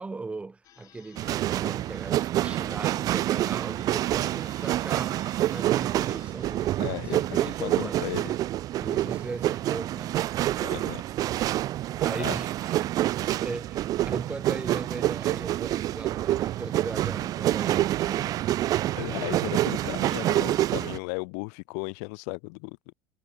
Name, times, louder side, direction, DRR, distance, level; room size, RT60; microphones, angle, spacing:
voice 1, 0.0-8.0 8.8-10.1 11.9-12.9 13.2-18.5, right 3 dB, 15° right, 1.7 m, -38 dB
sound 1, 0.6-13.2, left 12 dB, 45° left, 3.3 m, -59 dB
sound 2, 1.2-21.0, right 14 dB, 45° right, 0.7 m, -27 dB
voice 2, 6.8-8.3 10.6-11.0 12.1-12.4 19.0-22.9, left 40 dB or more, 75° left, 0.4 m, -35 dB
supercardioid pair, 120°, 8 cm